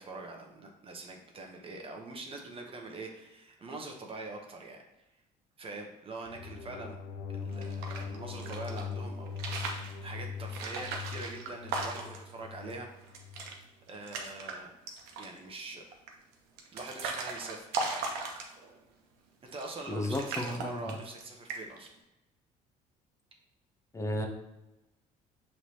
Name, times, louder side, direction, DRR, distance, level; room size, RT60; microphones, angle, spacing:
voice 1, 0.0-4.8 5.6-7.0 7.3-9.4 10.0-12.9 13.9-14.7 15.2-15.8 16.7-17.7 19.5-21.9, right 2 dB, 35° right, 1 dB, 0.8 m, -43 dB
sound 1, 6.3-13.5, left 5 dB, 80° left, 0.5 m, -41 dB
sound 2, 7.5-8.8 9.3-9.9 10.5-12.3 12.7-12.8 13.0-13.5 13.9-14.5 14.9-15.4 16.1-18.8 19.5-19.9 20.1-21.2 21.5-21.9, right 3 dB, 85° right, 0.7 m, -37 dB
voice 2, 19.9-20.9 23.9-24.3, left 1 dB, 20° left, 3 dB, 0.7 m, -33 dB
5.8 x 3.2 x 2.8 m, 0.94 s
supercardioid pair, 95°, 16 cm